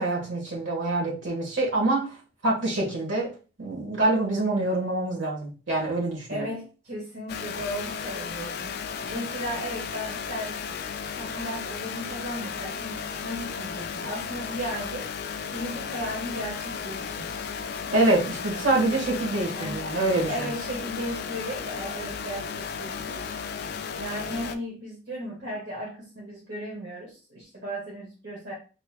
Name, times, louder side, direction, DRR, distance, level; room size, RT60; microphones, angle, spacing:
voice 1, 0.0-2.1 2.4-3.3 3.6-6.4 17.9-20.5, right 2 dB, 75° right, -2 dB, 1.5 m, -25 dB
voice 2, 6.3-10.8 11.2-15.1 15.5-17.5 19.5-23.3 23.9-28.5, equal, 60° right, -4 dB, 1.0 m, -36 dB
sound 1, 7.3-24.6, left 6 dB, 55° left, 0.3 m, -34 dB
4.4 x 3.0 x 2.3 m, 0.35 s
head